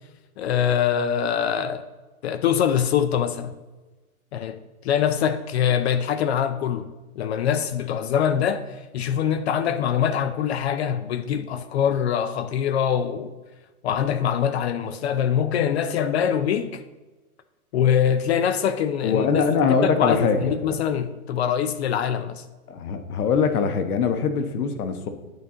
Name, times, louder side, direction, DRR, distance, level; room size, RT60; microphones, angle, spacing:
voice 1, 0.4-1.8 2.2-3.6 4.3-6.9 7.2-8.6 8.9-13.3 13.8-16.8 17.7-22.4, left 8 dB, 50° left, 0.5 m, -23 dB
voice 2, 19.0-20.6 22.7-25.1, left 5 dB, 80° left, 1.1 m, -22 dB
11.5 x 4.3 x 3.7 m
hypercardioid pair, 150°, 44 cm